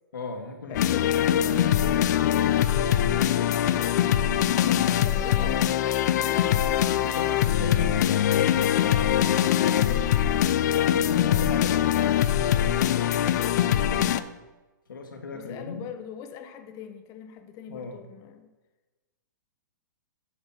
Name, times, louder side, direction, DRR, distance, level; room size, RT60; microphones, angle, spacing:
voice 1, 0.1-1.1 4.6-5.0 7.0-10.5 11.0-11.9 14.9-15.8 17.7-18.0, left 4 dB, 85° left, 2 dB, 1.7 m, -37 dB
sound 1, 0.7-14.2, left 11 dB, 60° left, 0.5 m, -23 dB
voice 2, 0.7-4.2 5.0-5.7 13.1-14.3 15.3-18.5, left 7 dB, 30° left, 7 dB, 0.9 m, -41 dB
8.2 x 5.5 x 6.0 m, 1.2 s
hypercardioid pair, 130°, 11 cm